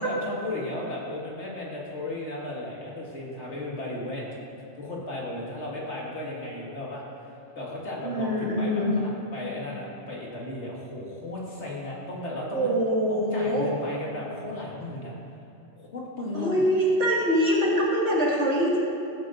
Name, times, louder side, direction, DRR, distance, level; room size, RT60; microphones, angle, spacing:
voice 1, 0.0-4.2 4.7-7.0 7.5-12.8 13.1-15.1 15.8-16.6, left 2 dB, 80° left, -4 dB, 2.2 m, -35 dB
voice 2, 8.0-8.9 12.5-13.7 16.3-18.8, equal, 80° right, -5 dB, 2.4 m, -24 dB
15.0 x 8.8 x 2.6 m, 2.8 s
omnidirectional pair, 1.2 m